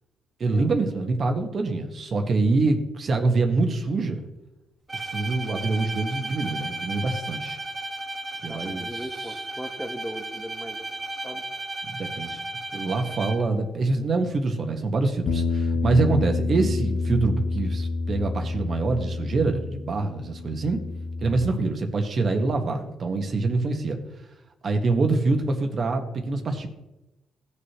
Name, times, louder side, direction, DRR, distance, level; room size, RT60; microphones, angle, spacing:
voice 1, 0.4-4.3 4.9-7.6 8.4-8.9 11.8-12.4 12.7-20.8 21.2-24.0 24.6-26.7, right 3 dB, 45° right, 4 dB, 1.6 m, -25 dB
Bowed string instrument, 4.9-13.6, right 2 dB, 25° right, 1.4 m, -34 dB
voice 2, 8.5-11.4, equal, ahead, 5 dB, 1.3 m, -38 dB
Bass guitar, 15.3-21.5, left 3 dB, 60° left, 1.1 m, -28 dB
17.0 x 6.7 x 3.2 m, 0.97 s
cardioid pair, 90°, 0 cm